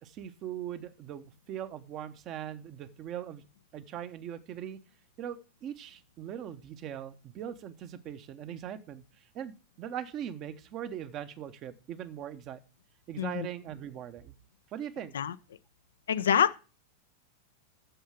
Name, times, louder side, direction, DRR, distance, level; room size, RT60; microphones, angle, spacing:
voice 1, 0.0-3.4 3.7-4.8 5.2-9.0 9.3-12.6 13.1-14.3 14.7-15.1, right 10 dB, 35° right, 1.0 m, -40 dB
voice 2, 13.2-13.5 15.1-15.3 16.1-16.6, left 8 dB, 65° left, 0.5 m, -26 dB
7.8 x 7.3 x 6.4 m
figure-of-eight pair, 90°, 0 cm